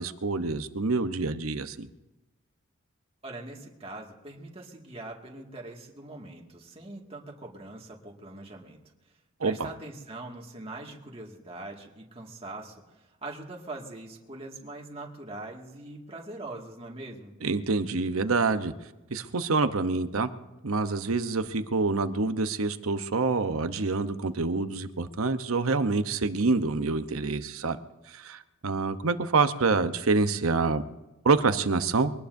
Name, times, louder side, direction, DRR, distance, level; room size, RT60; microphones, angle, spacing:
voice 1, 0.0-1.9 9.4-9.7 17.4-18.7 19.1-20.3 20.6-27.8 28.1-30.8 31.2-32.1, right 3 dB, 80° right, 10 dB, 0.9 m, -26 dB
voice 2, 3.2-8.8 9.4-17.3, right 2 dB, 30° right, -1 dB, 2.1 m, -42 dB
23.5 x 18.5 x 2.7 m, 1.1 s
head